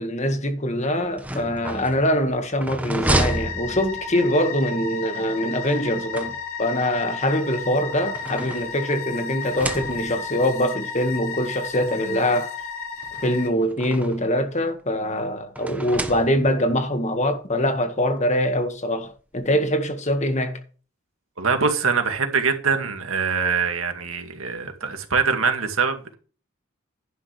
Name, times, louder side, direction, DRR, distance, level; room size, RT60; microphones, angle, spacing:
voice 1, 0.0-12.6 13.2-20.6, equal, 35° left, 1.8 m, -23 dB
sound 1, 1.1-4.4 5.6-6.8 7.6-9.0 9.4-10.4 11.3-11.4 11.7-11.8 13.0-14.3 15.6-16.7, right 1 dB, 5° right, 1.1 m, -30 dB
sound 2, 3.1-13.5, left 6 dB, 80° left, 2.7 m, -33 dB
voice 2, 21.4-26.2, right 5 dB, 85° right, 2.2 m, -23 dB
11.0 x 10.5 x 3.4 m
head